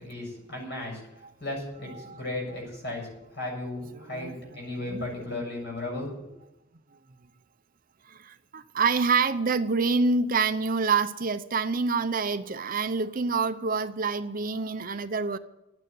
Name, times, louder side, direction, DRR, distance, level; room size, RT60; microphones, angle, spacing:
voice 1, 0.0-6.1, left 2 dB, 55° left, 0 dB, 7.3 m, -35 dB
voice 2, 8.1-15.4, right 4 dB, 45° right, 10 dB, 0.7 m, -27 dB
12.0 x 9.2 x 9.5 m, 0.90 s
head